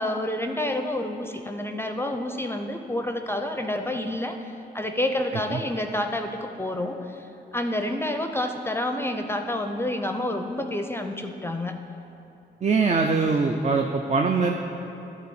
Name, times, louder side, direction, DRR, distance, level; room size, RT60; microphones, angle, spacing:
voice 1, 0.0-6.3 6.6-7.3 7.5-11.8, left 1 dB, 15° left, 5 dB, 0.6 m, -29 dB
voice 2, 12.6-14.5, right 4 dB, 40° right, 3 dB, 0.5 m, -22 dB
11.0 x 4.1 x 7.0 m, 2.9 s
cardioid pair, 75°, 18 cm